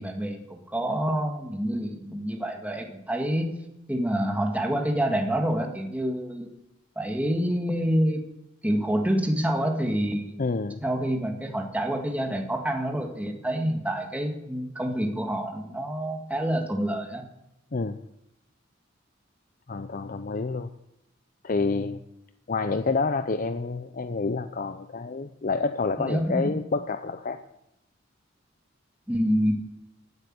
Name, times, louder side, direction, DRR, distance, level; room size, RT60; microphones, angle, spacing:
voice 1, 0.0-3.6 3.9-6.5 7.0-8.2 8.6-10.4 10.8-17.2 26.0-26.5 29.1-29.5, equal, 10° right, 3 dB, 1.8 m, -27 dB
voice 2, 10.4-10.8 17.7-18.0 19.7-20.7 21.4-22.0 22.5-27.4, left 4 dB, 45° left, 10 dB, 0.6 m, -28 dB
16.0 x 8.2 x 8.8 m, 0.86 s
head